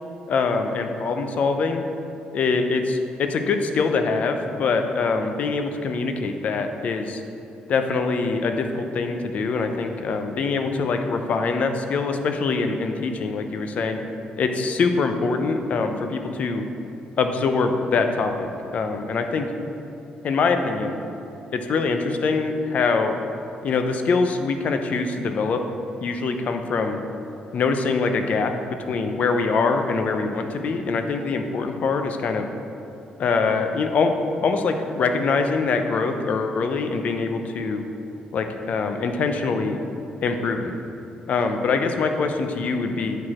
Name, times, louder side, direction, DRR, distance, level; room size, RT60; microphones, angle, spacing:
voice 1, 0.3-1.8 2.3-7.2 7.7-14.0 14.4-16.6 17.2-19.5 20.2-21.0 21.5-23.2 23.6-25.6 26.0-27.0 27.5-28.5 28.9-32.5 33.2-34.1 34.4-37.8 38.3-39.8 40.2-40.7 41.3-43.2, left 4 dB, 55° left, 6 dB, 0.6 m, -24 dB
8.1 x 4.8 x 4.3 m, 2.7 s
cardioid pair, 105°, 3 cm